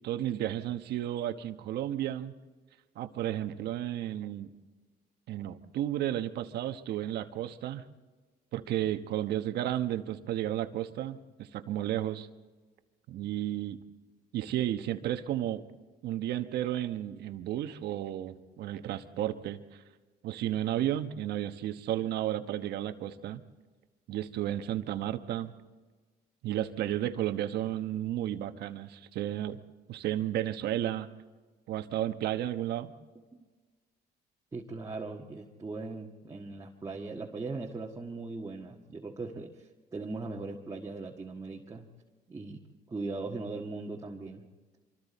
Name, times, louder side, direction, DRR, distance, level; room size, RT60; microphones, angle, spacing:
voice 1, 0.0-2.3 3.0-4.5 5.3-7.8 8.5-12.3 13.1-13.8 14.3-15.6 16.0-19.8 20.2-23.4 24.1-25.5 26.4-29.6 29.9-31.1 31.7-32.9, right 12 dB, 75° right, 9 dB, 1.2 m, -33 dB
voice 2, 34.5-41.9 42.3-42.6 42.9-44.5, right 3 dB, 20° right, -1 dB, 1.6 m, -39 dB
25.5 x 24.5 x 4.2 m, 1.3 s
cardioid pair, 110°, 17 cm